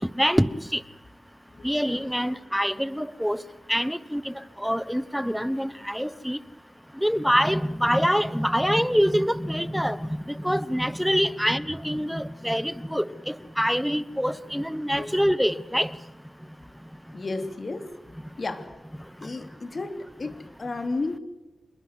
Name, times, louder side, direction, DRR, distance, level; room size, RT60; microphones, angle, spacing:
voice 1, 0.2-0.8 1.6-3.4 3.7-4.3 4.6-6.4 7.0-15.9, equal, ahead, 17 dB, 1.1 m, -25 dB
voice 2, 17.1-17.9 18.4-18.7 19.2-21.2, left 3 dB, 50° left, 9 dB, 2.9 m, -33 dB
26.5 x 22.0 x 8.2 m, 1.0 s
wide cardioid pair, 80°, 0 cm